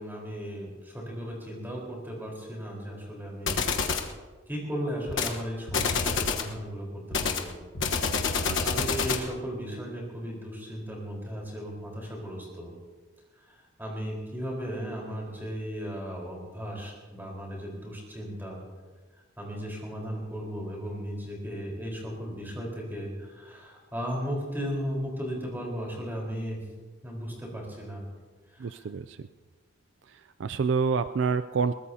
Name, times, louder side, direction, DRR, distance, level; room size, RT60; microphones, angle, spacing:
voice 1, 0.0-3.6 4.5-7.5 8.6-12.7 13.5-18.6 19.4-26.6 27.0-28.0 28.5-28.9, equal, 10° right, -2 dB, 4.2 m, -36 dB
sound 1, 3.5-4.1 5.1-5.4 5.7-6.5 7.1-9.3, left 5 dB, 65° left, 1.2 m, -27 dB
voice 2, 8.5-8.9 28.6-29.3 30.1-31.7, right 5 dB, 60° right, 12 dB, 0.4 m, -28 dB
22.0 x 19.0 x 2.8 m, 1.4 s
head